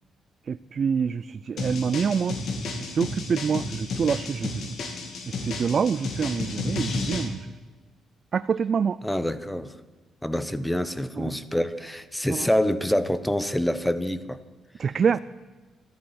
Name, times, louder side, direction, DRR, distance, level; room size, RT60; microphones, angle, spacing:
voice 1, 0.5-2.4 2.9-4.6 5.3-7.5 8.3-9.0 11.2-11.3 12.3-12.5 14.8-15.2, right 6 dB, 50° right, 15 dB, 0.4 m, -26 dB
sound 1, 1.6-7.3, left 3 dB, 65° left, 2.5 m, -32 dB
voice 2, 9.0-9.7 10.2-14.4, equal, 5° left, 14 dB, 1.0 m, -26 dB
13.0 x 11.0 x 9.5 m, 1.3 s
cardioid pair, 90°, 0 cm